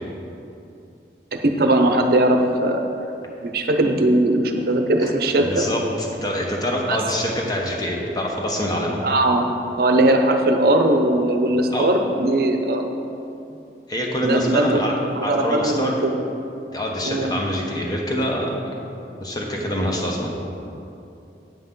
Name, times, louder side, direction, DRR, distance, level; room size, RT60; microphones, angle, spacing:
voice 1, 1.4-2.8 3.4-5.7 6.9-7.0 9.0-9.5 9.8-12.9 14.2-14.8 15.1-16.1 17.0-17.3, right 1 dB, 55° right, 5 dB, 0.7 m, -19 dB
voice 2, 5.4-9.0 11.7-11.9 13.9-14.9 15.2-15.9 16.7-18.7 19.2-20.3, equal, 20° left, -1 dB, 1.0 m, -25 dB
8.5 x 7.8 x 3.9 m, 2.7 s
head